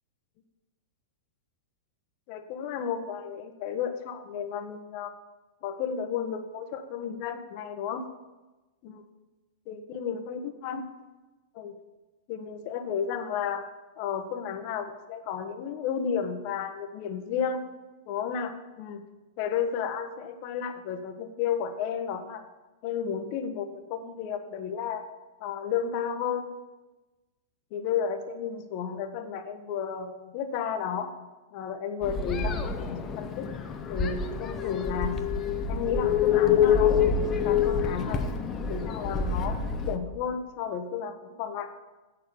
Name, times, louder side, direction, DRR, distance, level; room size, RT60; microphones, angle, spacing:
voice 1, 2.3-5.1 5.6-8.0 8.8-9.0 9.7-10.8 11.5-11.7 12.3-13.6 14.0-17.6 18.1-19.0 19.4-22.4 22.8-25.0 25.4-26.4 27.7-31.1 31.5-33.5 33.9-35.2 35.7-37.0 37.4-41.7, left 7 dB, 50° left, 8 dB, 1.1 m, -32 dB
sound 1, 32.0-40.0, left 7 dB, 30° left, 0.8 m, -26 dB
8.2 x 6.9 x 6.8 m, 1.1 s
hypercardioid pair, 105°, 0 cm